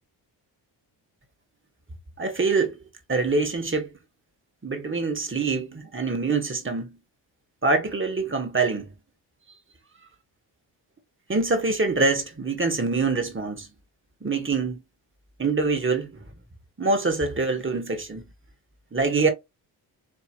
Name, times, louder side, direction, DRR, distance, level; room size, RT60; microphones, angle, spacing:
voice 1, 2.2-2.8 3.1-3.9 4.6-7.0 7.6-8.9 11.3-13.7 14.2-14.8 15.4-16.2 16.8-18.2 18.9-19.3, right 3 dB, 25° right, 1.8 m, -25 dB
4.9 x 3.4 x 3.1 m
supercardioid pair, 55°, 50 cm